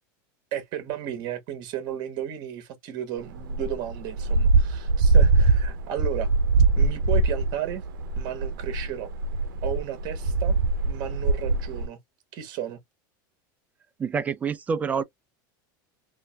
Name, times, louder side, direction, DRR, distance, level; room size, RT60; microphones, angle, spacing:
voice 1, 0.5-6.3 6.8-7.8 8.2-9.1 9.6-10.6 10.8-12.0 12.3-12.8, right 10 dB, 45° right, 1.4 m, -33 dB
sound 1, 3.4-11.9, right 3 dB, 90° right, 0.6 m, -22 dB
voice 2, 14.0-15.0, right 6 dB, 15° right, 0.3 m, -27 dB
3.7 x 2.6 x 2.2 m
supercardioid pair, 155°, 11 cm